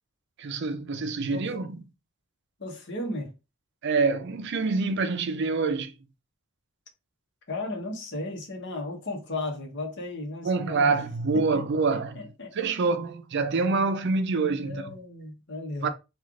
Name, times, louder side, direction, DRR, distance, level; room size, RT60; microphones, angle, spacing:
voice 1, 0.4-1.8 3.8-5.9 10.4-12.2 12.5-14.8 15.8-15.9, right 4 dB, 55° right, 0.5 m, -26 dB
voice 2, 2.6-3.3 7.5-11.0 11.3-11.4 11.9-12.6 14.6-15.9, left 2 dB, 55° left, 1.0 m, -35 dB
3.2 x 2.4 x 3.7 m
head